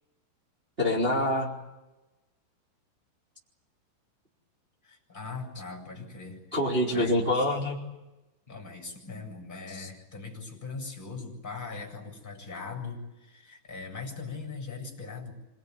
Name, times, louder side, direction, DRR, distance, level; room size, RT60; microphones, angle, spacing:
voice 1, 0.8-1.5 6.5-7.8 9.8-9.9, left 1 dB, 15° right, -4 dB, 3.4 m, -26 dB
voice 2, 4.8-6.6 6.9-7.3 8.5-15.3, left 4 dB, 10° left, 1 dB, 7.8 m, -40 dB
27.0 x 20.5 x 9.6 m, 1.0 s
omnidirectional pair, 4.8 m